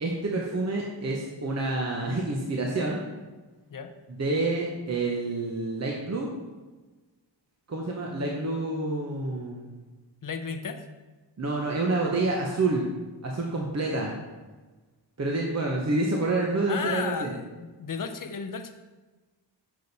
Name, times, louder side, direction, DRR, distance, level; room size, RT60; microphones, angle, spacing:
voice 1, 0.0-3.0 4.1-6.3 7.7-9.7 11.4-12.8 13.2-14.1 15.2-17.3, right 2 dB, 35° right, -1 dB, 0.9 m, -28 dB
voice 2, 10.2-10.8 16.7-18.7, left 6 dB, 45° left, 9 dB, 0.7 m, -34 dB
6.8 x 6.3 x 4.1 m, 1.2 s
wide cardioid pair, 120°, 44 cm